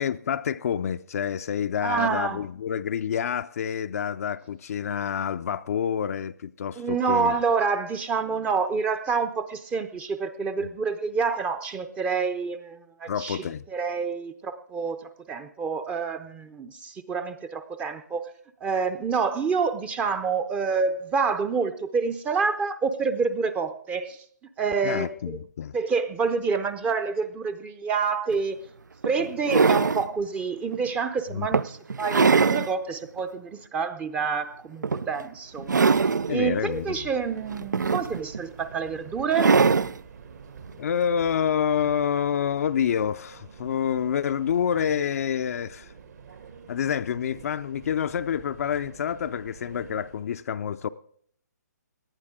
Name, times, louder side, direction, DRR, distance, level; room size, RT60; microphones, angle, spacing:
voice 1, 0.0-7.4 10.6-10.7 13.1-13.6 24.8-25.8 31.3-31.5 36.3-37.1 40.8-45.9 46.7-50.9, left 8 dB, 55° left, 0.4 m, -28 dB
voice 2, 1.8-2.4 6.8-18.2 18.6-24.2 24.6-25.4 25.7-28.6 29.0-35.8 36.3-39.5, right 5 dB, 10° right, 0.5 m, -28 dB
sound 1, 28.3-28.4 29.0-30.1 30.7-30.9 31.5-32.7 33.2-33.3 34.8-35.2 35.6-36.3 37.5-38.4 39.3-40.0 41.3-41.4, right 5 dB, 90° right, 0.4 m, -22 dB
Subway metro underground, 35.4-50.3, right 6 dB, 65° right, 2.2 m, -47 dB
18.0 x 11.0 x 3.7 m
hypercardioid pair, 140°, 10 cm